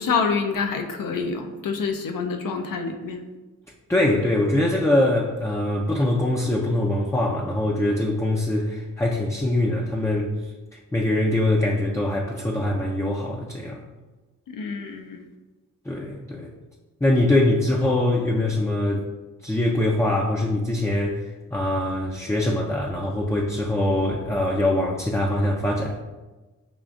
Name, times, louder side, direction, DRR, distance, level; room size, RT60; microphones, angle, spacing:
voice 1, 0.0-3.2 14.5-15.2, left 5 dB, 65° left, 5 dB, 0.5 m, -27 dB
voice 2, 3.9-10.3 10.7-13.8 15.9-16.5 17.0-19.1 19.4-26.0, left 1 dB, 10° left, -1 dB, 0.4 m, -23 dB
5.2 x 2.4 x 2.4 m, 1.2 s
cardioid pair, 45°, 35 cm